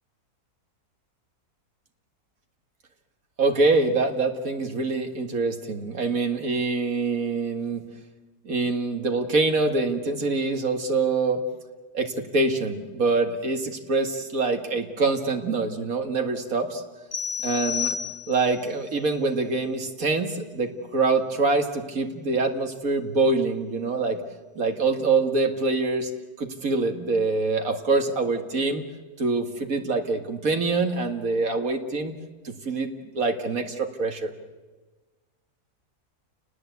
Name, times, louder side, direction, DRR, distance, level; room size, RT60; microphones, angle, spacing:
voice 1, 3.4-7.8 8.4-11.4 11.9-16.8 17.4-18.0 18.3-24.2 24.6-26.1 26.4-28.8 29.2-32.1 32.4-34.3, right 3 dB, 60° right, 5 dB, 2.5 m, -25 dB
sound 1, 17.1-18.6, left 8 dB, 45° left, 3.8 m, -30 dB
30.0 x 19.5 x 8.3 m, 1.3 s
omnidirectional pair, 1.7 m